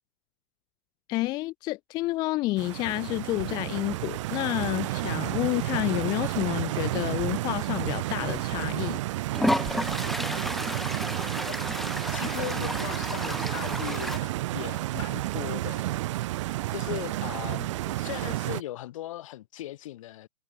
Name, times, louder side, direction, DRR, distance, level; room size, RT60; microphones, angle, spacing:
voice 1, 1.1-9.0, left 19 dB, 20° left, 0.3 m, -29 dB
Stream, 2.6-18.6, right 17 dB, 50° right, 1.1 m, -31 dB
Toilet flush, 8.4-8.5 9.3-14.2, equal, ahead, 1.0 m, -31 dB
voice 2, 11.0-11.6 12.1-15.9 16.5-20.3, left 14 dB, 55° left, 2.5 m, -38 dB
hypercardioid pair, 130°, 20 cm